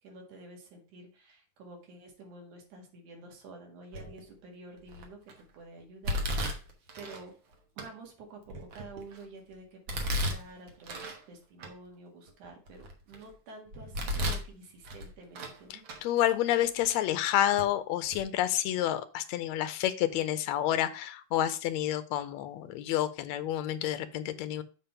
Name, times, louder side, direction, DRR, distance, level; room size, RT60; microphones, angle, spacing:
voice 1, 0.0-6.7 7.0-7.3 7.8-15.8, right 2 dB, 80° right, 1 dB, 3.3 m, -50 dB
Domestic sounds home sounds, 3.9-4.3 4.9-5.3 6.0-7.2 7.8-7.9 8.5-9.2 9.9-11.2 11.6-11.7 12.3-13.2 13.7-14.5 14.8-15.6 15.8-16.0 16.8-16.9 17.6-17.7 18.0-18.2, equal, 55° right, 1.5 m, -34 dB
voice 2, 15.7-24.6, left 12 dB, 75° left, 12 dB, 1.7 m, -29 dB
7.3 x 3.5 x 5.6 m, 0.35 s
omnidirectional pair, 3.5 m